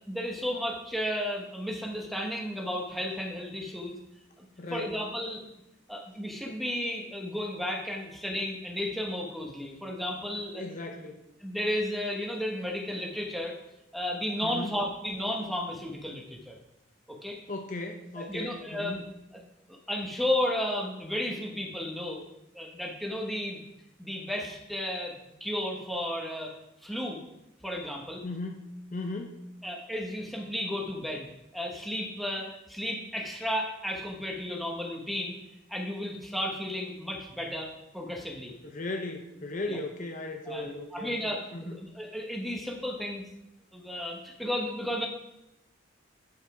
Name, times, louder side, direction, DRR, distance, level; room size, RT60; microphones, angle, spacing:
voice 1, 0.1-4.0 4.4-4.5 4.7-5.5 5.9-10.6 11.4-13.5 13.9-16.5 17.1-17.4 18.2-19.0 19.7-22.2 22.5-23.6 24.0-25.1 25.4-26.5 26.8-27.2 27.6-28.2 29.6-35.4 35.7-38.5 39.7-39.8 40.5-43.2 43.7-45.1, left 1 dB, ahead, -1 dB, 1.2 m, -33 dB
voice 2, 4.6-5.0 10.6-11.3 14.4-14.8 17.5-19.0 28.2-29.4 38.6-41.1 41.5-41.7, left 2 dB, 40° left, 4 dB, 0.6 m, -37 dB
9.1 x 5.5 x 4.9 m, 0.88 s
head